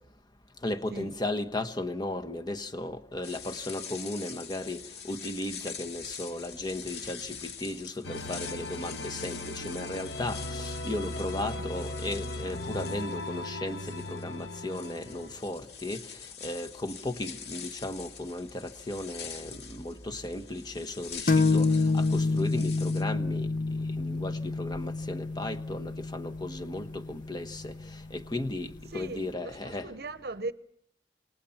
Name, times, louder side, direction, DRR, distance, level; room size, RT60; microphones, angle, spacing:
voice 1, 0.6-23.5 24.0-29.9, left 1 dB, 25° left, 1.3 m, -36 dB
sound 1, 3.2-23.0, left 7 dB, 65° left, 2.3 m, -45 dB
sound 2, 8.0-15.4, left 2 dB, 90° left, 1.6 m, -38 dB
sound 3, 21.3-28.8, left 3 dB, 45° left, 0.8 m, -28 dB
voice 2, 28.9-30.5, right 3 dB, 60° right, 0.8 m, -39 dB
28.5 x 20.5 x 5.8 m
head